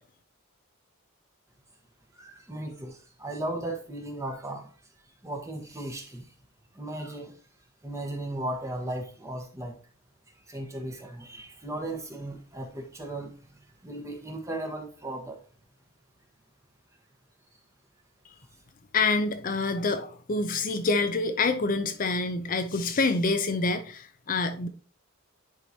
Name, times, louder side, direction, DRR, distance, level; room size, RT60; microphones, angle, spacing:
voice 1, 2.1-4.7 5.2-6.3 6.7-7.3 7.8-9.8 10.3-15.4, right 1 dB, 15° right, 1.2 m, -36 dB
voice 2, 18.9-24.7, left 3 dB, 40° left, 0.5 m, -27 dB
10.0 x 4.7 x 2.8 m
head